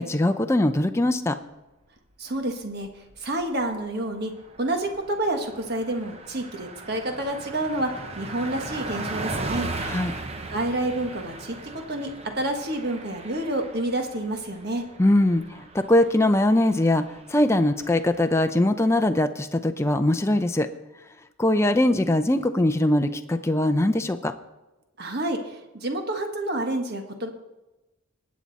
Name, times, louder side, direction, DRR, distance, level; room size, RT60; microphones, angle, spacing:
voice 1, 0.0-1.4 9.8-10.1 15.0-20.7 21.4-24.3, left 1 dB, 10° left, 7 dB, 0.5 m, -21 dB
voice 2, 2.2-4.3 4.6-7.9 8.2-9.7 10.5-14.8 25.0-27.3, right 1 dB, 50° right, 4 dB, 1.5 m, -29 dB
Car passing by, 2.6-3.3 3.6-3.7 4.0-18.3, right 2 dB, 30° right, 0.9 m, -38 dB
20.5 x 8.5 x 4.1 m, 1.1 s
head